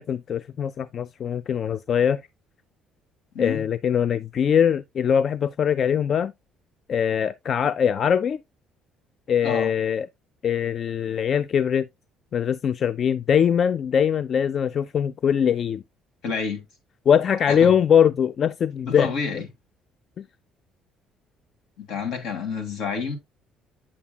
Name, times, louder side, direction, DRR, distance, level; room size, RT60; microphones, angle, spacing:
voice 1, 0.0-2.2 3.4-6.3 6.9-8.4 9.3-10.1 10.4-11.9 12.3-15.8 17.1-19.4 20.2-20.3, left 8 dB, 50° left, 0.3 m, -22 dB
voice 2, 16.2-16.7 17.5-17.7 18.9-19.5 21.8-23.2, left 5 dB, 75° left, 2.1 m, -29 dB
8.5 x 7.0 x 2.3 m
cardioid pair, 100°, 0 cm